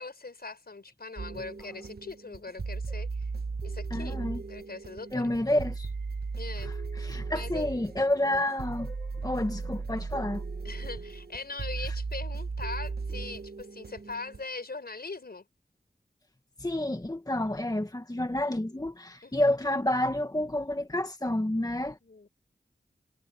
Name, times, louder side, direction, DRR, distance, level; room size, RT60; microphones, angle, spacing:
voice 1, 0.0-3.3 3.6-4.2 4.5-5.3 6.4-6.7 7.3-7.7 8.2-8.4 10.6-15.4 19.2-19.6 22.0-22.3, left 3 dB, 60° left, 5.6 m, -41 dB
sound 1, 1.2-14.4, right 4 dB, 65° right, 1.3 m, -36 dB
voice 2, 3.9-4.4 5.1-5.9 6.6-10.4 16.6-22.0, left 1 dB, 20° left, 1.6 m, -29 dB
wide cardioid pair, 50°, 18 cm